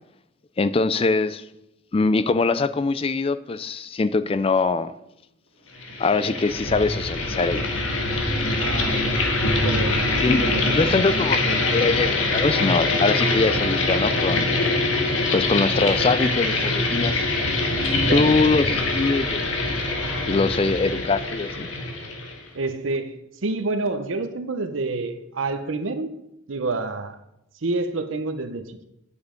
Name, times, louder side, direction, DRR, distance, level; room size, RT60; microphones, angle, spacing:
voice 1, 0.6-1.4 1.9-4.9 6.0-7.6 10.2-10.4 10.7-14.5 15.3-17.2 18.1-19.4 19.7-19.8 20.3-21.7, left 3 dB, 30° left, 15 dB, 0.4 m, -23 dB
sound 1, 5.8-22.5, left 2 dB, 85° left, 1.7 m, -24 dB
voice 2, 8.5-9.2 9.6-10.8 18.0-18.4 22.5-23.2 23.4-26.1 26.5-27.2 27.6-28.8, right 3 dB, 80° right, 9 dB, 0.8 m, -28 dB
9.3 x 7.0 x 5.1 m, 0.84 s
head